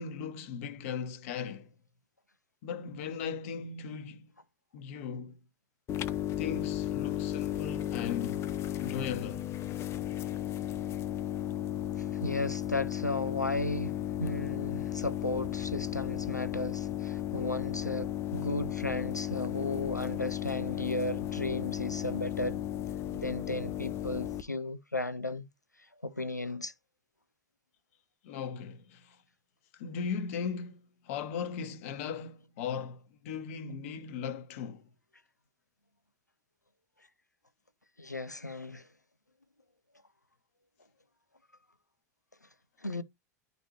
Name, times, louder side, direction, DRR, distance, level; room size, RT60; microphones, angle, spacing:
voice 1, 0.0-1.7 2.6-4.3 4.7-5.4 6.4-8.5 8.8-9.5 28.2-29.2 29.7-34.9, left 6 dB, 50° left, 1.0 m, -38 dB
sound 1, 5.9-24.4, left 12 dB, 30° left, 0.5 m, -35 dB
voice 2, 12.0-22.6 23.1-25.5 26.0-26.7 38.0-38.9 42.8-43.0, left 2 dB, 90° left, 0.4 m, -35 dB
11.0 x 4.1 x 2.8 m
figure-of-eight pair, 85°, 9 cm